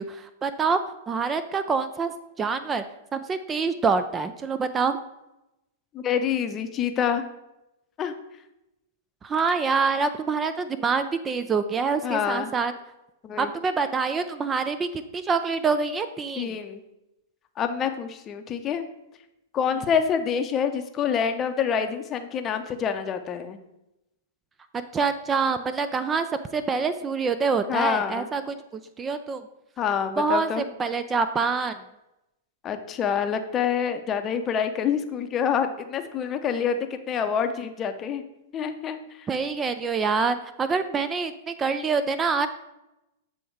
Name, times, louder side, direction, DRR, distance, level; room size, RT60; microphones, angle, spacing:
voice 1, 0.0-2.8 3.1-5.0 9.2-12.7 13.4-16.5 24.7-26.3 26.5-29.5 30.2-31.8 39.3-42.5, right 5 dB, 20° right, 10 dB, 0.4 m, -26 dB
voice 2, 5.9-7.2 8.0-8.1 12.0-12.5 13.2-13.5 16.4-16.8 17.6-18.8 19.5-23.6 27.7-28.3 29.8-30.6 32.6-36.8 37.1-38.2 38.5-39.3, left 7 dB, 30° left, 8 dB, 0.6 m, -26 dB
7.8 x 3.5 x 4.5 m, 0.91 s
hypercardioid pair, 105°, 0 cm